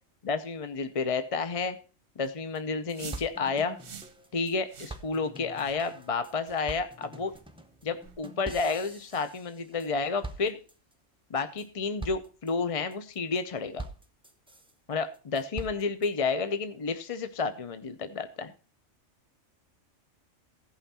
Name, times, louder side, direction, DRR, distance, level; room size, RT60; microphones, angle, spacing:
voice 1, 0.2-1.8 2.2-3.8 4.3-7.3 7.8-10.6 11.3-13.8 14.9-18.5, left 4 dB, 40° left, 10 dB, 0.6 m, -31 dB
sound 1, 2.2-2.3 2.5-2.6 2.9-4.5 4.9-9.9 10.2-10.9 11.3-11.7 12.0-12.5 12.9-13.4 13.8-14.7 15.1-16.1, right 2 dB, 5° right, 0.6 m, -44 dB
sound 2, 2.9-3.3 3.8-4.2 4.7-5.0 5.5-5.8 6.4-6.6 7.3-7.4 8.0-8.2, right 7 dB, 50° right, 0.9 m, -46 dB
15.5 x 5.7 x 4.2 m, 0.35 s
omnidirectional pair, 1.3 m